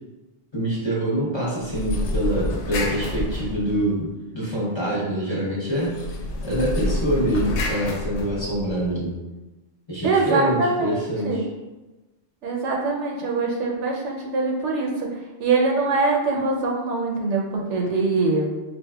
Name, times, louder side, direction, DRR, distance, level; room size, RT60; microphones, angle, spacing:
voice 1, 0.5-5.9 6.4-9.2 9.9-11.5, right 1 dB, 30° left, -6 dB, 0.7 m, -25 dB
sound 1, 1.6-4.1 5.7-8.9, left 2 dB, 80° left, 0.9 m, -28 dB
voice 2, 10.0-11.4 12.4-15.1 15.4-18.5, right 3 dB, 85° right, 0 dB, 1.0 m, -23 dB
4.3 x 2.4 x 2.3 m, 1.1 s
omnidirectional pair, 1.2 m